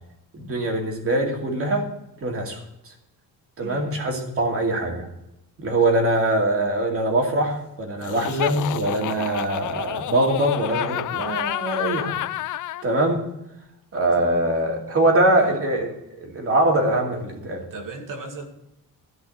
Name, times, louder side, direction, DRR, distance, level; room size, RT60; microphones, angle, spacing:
voice 1, 0.3-1.9 2.2-2.6 2.8-2.9 3.6-5.1 5.6-12.2 12.8-13.2 13.9-15.9 16.2-17.6, right 1 dB, 35° right, 2 dB, 2.6 m, -23 dB
voice 2, 3.6-3.9 14.2-14.5 15.4-15.6 17.7-18.4, right 3 dB, 55° right, 3 dB, 2.6 m, -37 dB
Laughter, 8.0-12.8, left 14 dB, 55° left, 0.5 m, -29 dB
14.5 x 5.6 x 9.3 m, 0.85 s
cardioid pair, 170°, 38 cm